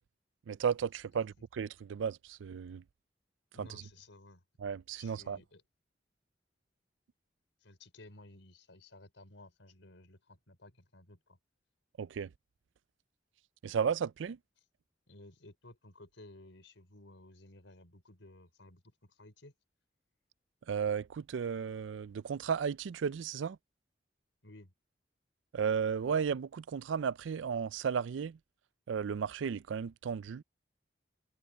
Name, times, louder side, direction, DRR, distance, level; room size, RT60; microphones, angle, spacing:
voice 1, 0.5-2.8 3.6-3.7 4.6-5.4 12.0-12.3 13.6-14.4 20.7-23.6 25.5-28.4 28.9-30.4, right 7 dB, 90° right, 0.4 m, -34 dB
voice 2, 3.5-4.4 5.0-5.6 7.6-11.4 15.1-19.5 24.4-24.7, left 2 dB, 90° left, 4.5 m, -56 dB
head